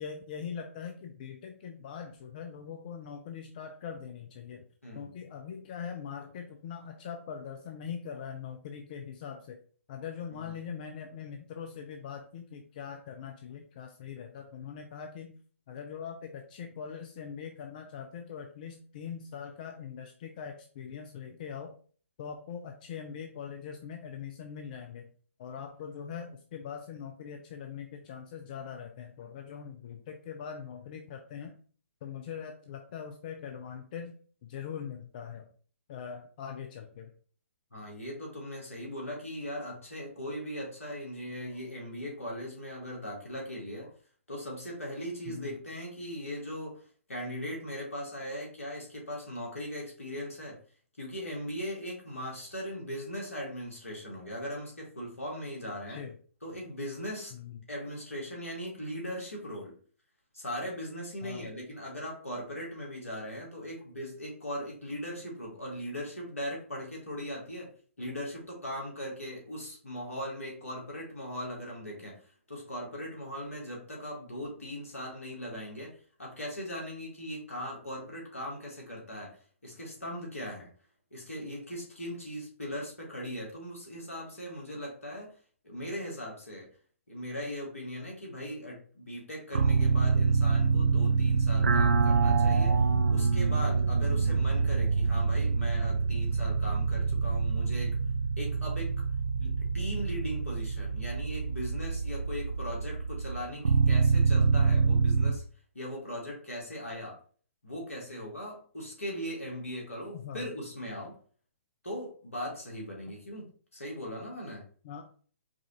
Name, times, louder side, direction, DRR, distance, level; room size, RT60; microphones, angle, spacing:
voice 1, 0.0-4.6 4.9-9.6 9.9-15.3 15.7-21.7 22.2-25.0 25.4-31.5 32.0-34.1 34.4-35.5 35.9-37.1 45.3-45.6 55.6-56.1 57.3-57.6 61.2-61.5 110.1-110.5 113.1-113.2 114.8-115.1, left 7 dB, 40° left, 4 dB, 0.4 m, -42 dB
voice 2, 37.7-43.9 44.3-46.8 47.1-50.6 51.0-56.0 56.4-57.3 57.7-59.7 60.3-67.7 68.0-72.2 72.5-79.4 79.6-80.7 81.1-85.3 85.6-86.7 87.1-92.8 93.1-98.0 98.4-98.9 99.4-105.4 105.7-107.2 107.6-111.2 111.8-113.5 113.7-114.7, equal, 80° left, -2 dB, 1.8 m, -39 dB
sound 1, 89.5-105.3, right 4 dB, 75° right, 0.4 m, -26 dB
4.7 x 2.4 x 2.9 m, 0.43 s
figure-of-eight pair, 125°, 7 cm